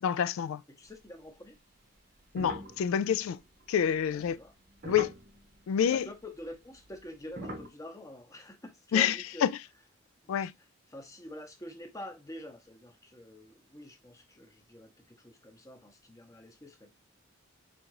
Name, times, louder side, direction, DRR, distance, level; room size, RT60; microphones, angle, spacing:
voice 1, 0.0-0.6 2.3-3.4 3.7-4.4 4.9-5.1 5.7-6.1 8.9-9.5 10.3-10.5, left 8 dB, 80° left, 0.3 m, -27 dB
voice 2, 0.7-1.6 4.0-4.5 5.9-9.5 10.2-10.5 10.9-16.9, left 1 dB, 15° left, 0.7 m, -47 dB
sound 1, 2.2-5.6 6.6-7.7, right 1 dB, 40° right, 0.7 m, -42 dB
3.7 x 2.5 x 4.6 m
head